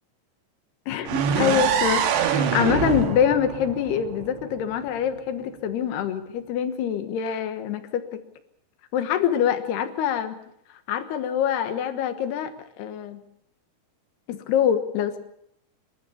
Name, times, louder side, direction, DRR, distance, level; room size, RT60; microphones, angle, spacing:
voice 1, 0.9-8.2 8.9-10.4 10.9-13.2 14.3-15.2, left 9 dB, 75° left, 10 dB, 3.4 m, -25 dB
sound 1, 1.1-4.9, right 8 dB, 80° right, 3.6 m, -25 dB
26.0 x 13.0 x 8.6 m, 0.73 s
omnidirectional pair, 4.8 m